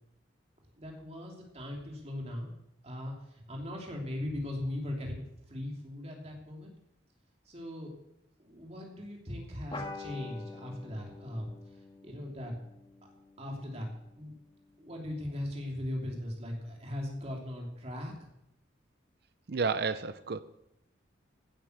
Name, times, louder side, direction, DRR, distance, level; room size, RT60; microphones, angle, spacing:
voice 1, 0.8-2.5 2.8-6.7 7.5-7.9 8.4-12.5 13.4-13.9 14.2-14.3 14.8-18.1, left 1 dB, 35° right, 0 dB, 2.7 m, -39 dB
sound 1, 9.7-14.6, left 3 dB, 25° left, 1.7 m, -47 dB
voice 2, 19.5-20.4, right 4 dB, 55° right, 12 dB, 0.6 m, -31 dB
16.0 x 9.2 x 6.6 m, 0.81 s
head